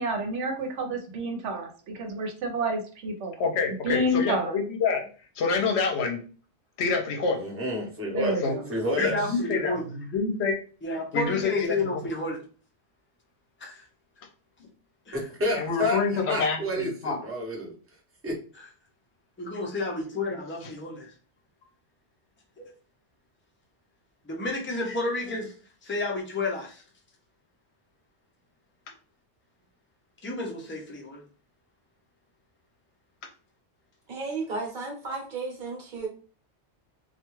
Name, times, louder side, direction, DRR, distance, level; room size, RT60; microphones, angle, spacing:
voice 1, 0.0-3.4 3.8-4.5 8.1-8.6, right 1 dB, 80° right, 3 dB, 1.0 m, -29 dB
voice 2, 3.4-5.1 5.4-6.2 6.8-7.5 8.4-8.6 9.0-10.5 11.1-11.8 15.5-17.2 20.6-20.7, left 5 dB, 65° left, 4 dB, 0.9 m, -27 dB
voice 3, 7.4-8.4 8.7-9.2 15.1-16.0 16.3-17.7 18.2-18.3, equal, 15° right, -2 dB, 0.7 m, -29 dB
voice 4, 9.0-9.8 10.8-12.4 13.6-13.8 15.1-15.2 18.6-18.7 19.4-21.1 22.6-22.7 24.3-25.5 25.8-26.8 30.2-31.2, left 2 dB, 15° left, 0 dB, 0.4 m, -31 dB
voice 5, 34.1-36.1, right 3 dB, 45° right, 0 dB, 1.0 m, -33 dB
2.4 x 2.2 x 3.0 m, 0.38 s
omnidirectional pair, 1.2 m